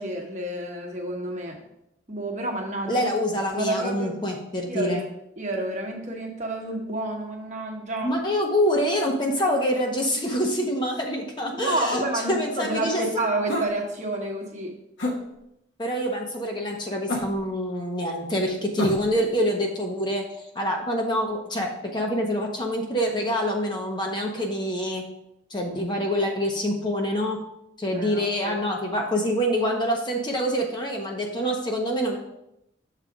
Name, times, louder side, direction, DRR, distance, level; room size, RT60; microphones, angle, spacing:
voice 1, 0.0-1.6 2.1-3.1 3.5-4.2 4.7-5.1 5.4-8.2 11.6-14.7 27.8-28.6, right 1 dB, 40° right, 1 dB, 1.1 m, -30 dB
voice 2, 2.9-5.0 8.0-12.0 12.3-13.0 15.8-20.2 20.5-25.0 25.5-27.4 27.8-32.2, equal, 25° left, 1 dB, 0.8 m, -26 dB
sound 1, 13.5-13.8 15.0-15.2 17.1-17.5 18.8-19.2, left 1 dB, 80° left, 1.4 m, -27 dB
6.7 x 4.1 x 4.9 m, 0.81 s
head